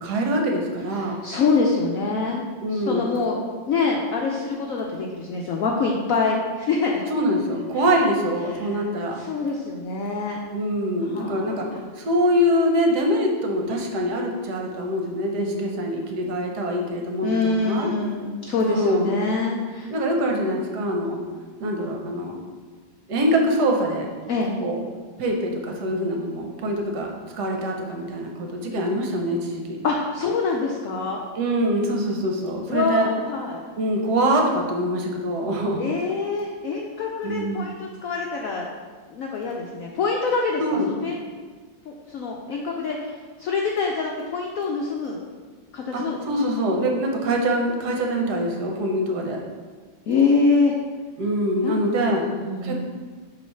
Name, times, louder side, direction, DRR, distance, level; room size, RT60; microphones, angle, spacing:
voice 1, 0.0-1.2 2.6-3.1 7.1-9.2 10.5-17.9 18.6-19.1 19.9-21.2 21.6-22.4 23.1-24.1 24.6-24.8 25.2-29.8 31.3-33.1 33.8-35.9 37.2-37.8 40.6-40.9 45.9-49.4 51.2-52.2 52.6-52.8, equal, 60° right, 1 dB, 1.4 m, -24 dB
voice 2, 1.0-2.4 2.7-7.0 7.8-7.9 8.4-8.9 9.2-10.4 11.0-11.6 17.2-19.9 24.3-24.6 29.8-31.2 32.7-33.6 35.8-38.7 39.1-41.2 41.9-45.2 45.7-46.2 50.1-50.7 51.6-51.8 52.1-52.8, left 4 dB, 75° left, -1 dB, 0.8 m, -25 dB
7.3 x 3.2 x 5.5 m, 1.5 s
omnidirectional pair, 2.1 m